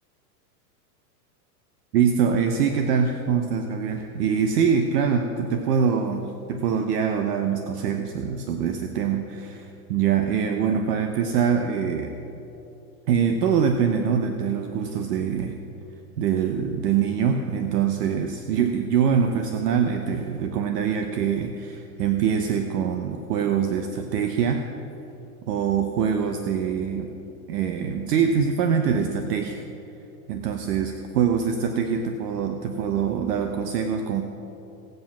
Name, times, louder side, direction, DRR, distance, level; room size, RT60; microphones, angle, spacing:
voice 1, 1.9-12.2 13.1-15.6 16.2-24.7 25.5-27.1 27.5-29.6 30.3-34.2, right 7 dB, 70° right, 6 dB, 1.1 m, -24 dB
17.5 x 7.9 x 5.9 m, 2.9 s
supercardioid pair, 135°, 49 cm